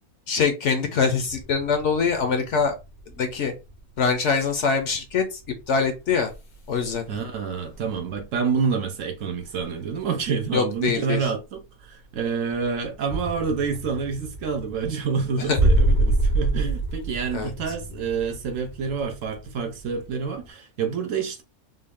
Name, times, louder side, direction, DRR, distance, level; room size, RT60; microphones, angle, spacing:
voice 1, 0.3-2.7 3.2-3.5 4.0-5.4 5.7-6.3 6.7-7.2 10.5-11.3 15.4-15.6 17.3-17.7, left 5 dB, 60° left, 0.9 m, -24 dB
sound 1, 1.3-8.9 9.1-20.5, right 2 dB, 85° left, 1.5 m, -29 dB
voice 2, 7.1-21.4, right 5 dB, 65° right, 1.0 m, -28 dB
3.7 x 2.3 x 3.5 m
omnidirectional pair, 1.6 m